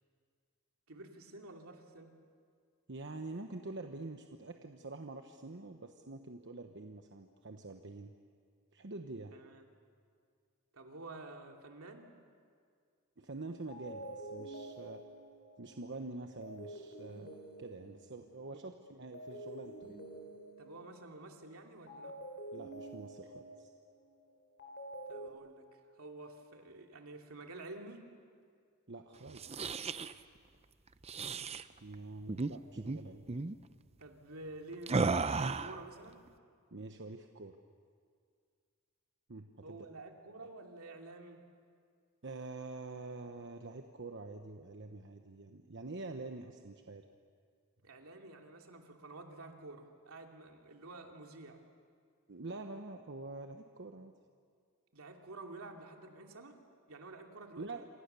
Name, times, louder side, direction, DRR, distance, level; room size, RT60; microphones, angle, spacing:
voice 1, 0.9-2.1 9.3-9.6 10.7-12.1 18.5-18.6 20.6-22.2 25.1-28.1 34.0-36.2 39.6-41.4 47.8-51.6 54.9-56.6 56.9-57.7, right 2 dB, 75° right, 2 dB, 2.7 m, -50 dB
voice 2, 2.9-8.1 8.7-9.4 13.2-15.0 15.6-17.3 17.6-20.0 22.5-23.7 28.9-29.9 31.8-33.3 36.7-37.6 39.3-39.9 42.2-47.0 52.3-54.1 57.6-57.9, right 3 dB, 55° right, 5 dB, 1.1 m, -46 dB
sound 1, 13.2-13.4 13.7-18.6 19.1-21.4 21.9-25.3, right 1 dB, 50° left, 4.9 m, -48 dB
sound 2, 29.3-30.1 31.0-31.6 32.3-32.5 32.8-33.0 33.3-33.6 34.9-35.8, right 3 dB, 30° right, 0.6 m, -34 dB
27.5 x 27.0 x 6.9 m, 2.1 s
head